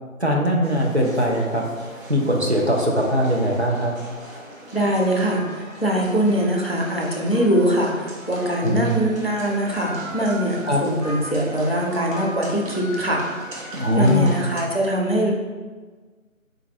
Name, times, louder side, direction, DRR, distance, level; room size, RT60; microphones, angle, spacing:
voice 1, 0.2-1.7 2.1-3.9 8.6-8.9 10.7-10.8 13.7-14.3, equal, 55° right, -1 dB, 0.5 m, -20 dB
sound 1, 0.6-14.6, right 1 dB, 70° right, 0.9 m, -38 dB
voice 2, 4.7-13.2 13.6-15.3, equal, 50° left, -1 dB, 0.4 m, -22 dB
4.0 x 2.5 x 2.6 m, 1.4 s
figure-of-eight pair, 175°, 41 cm